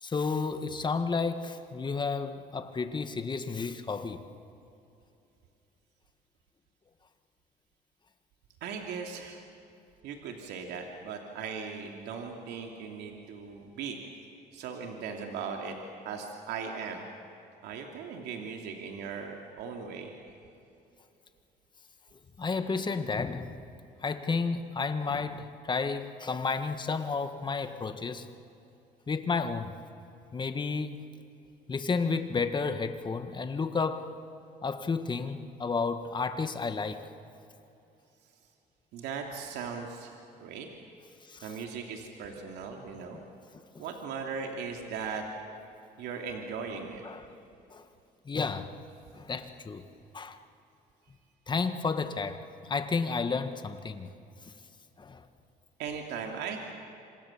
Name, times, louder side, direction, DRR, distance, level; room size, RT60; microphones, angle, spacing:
voice 1, 0.0-4.2 22.4-23.6 24.0-28.3 29.1-29.7 30.3-31.1 31.7-34.1 34.6-37.0 41.2-41.5 47.0-47.2 47.7-47.9 48.3-48.8 49.1-49.8 50.1-50.4 51.5-54.1 54.4-54.5 55.0-55.3, left 4 dB, 25° left, 1.8 m, -32 dB
voice 2, 8.6-9.4 10.0-14.0 14.5-15.8 16.0-17.0 17.6-20.1 38.9-40.7 41.4-43.2 43.8-45.2 46.0-47.0 55.8-56.6, right 6 dB, 85° right, 2.8 m, -38 dB
27.0 x 27.0 x 7.4 m
cardioid pair, 110°, 17 cm